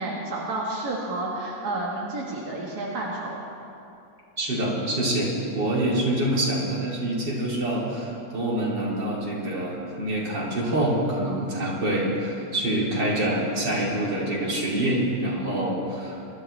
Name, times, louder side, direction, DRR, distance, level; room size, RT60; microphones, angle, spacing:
voice 1, 0.0-3.4, right 2 dB, 65° right, -5 dB, 2.2 m, -30 dB
voice 2, 4.4-16.2, right 1 dB, 85° right, -5 dB, 3.6 m, -26 dB
24.0 x 13.0 x 3.3 m, 2.7 s
omnidirectional pair, 1.8 m